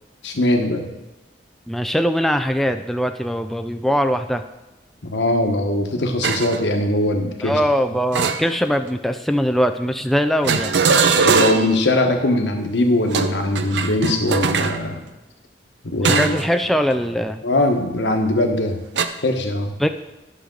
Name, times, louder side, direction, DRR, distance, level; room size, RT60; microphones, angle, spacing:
voice 1, 0.2-0.9 5.0-7.6 11.2-15.0 15.8-16.4 17.4-18.8 19.2-19.7, left 1 dB, 85° left, 4 dB, 1.2 m, -21 dB
voice 2, 1.7-4.4 7.4-10.7 16.1-17.4 19.8-19.9, equal, ahead, 7 dB, 0.3 m, -21 dB
sound 1, 6.2-6.6 8.1-8.9 10.4-11.8 13.0-14.8 16.0-16.5 16.9-17.1 19.0-19.1, right 5 dB, 75° right, 0.5 m, -20 dB
11.5 x 6.7 x 3.8 m, 0.99 s
head